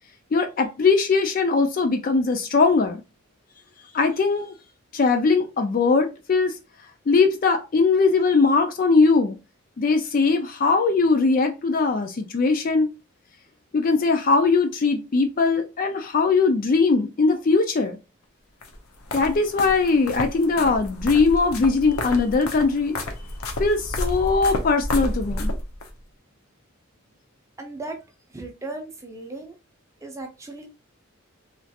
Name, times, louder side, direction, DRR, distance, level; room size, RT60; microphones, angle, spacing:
voice 1, 0.3-3.0 3.9-4.5 4.9-6.6 7.1-9.4 9.8-12.9 13.7-18.0 19.1-23.0 23.6-25.5, left 4 dB, 40° left, 0.3 m, -20 dB
sound 1, 18.6-25.9, left 1 dB, 90° left, 0.7 m, -30 dB
voice 2, 27.6-28.0 28.3-29.6 30.0-30.7, right 2 dB, 15° right, 0.5 m, -36 dB
3.1 x 2.4 x 2.7 m
head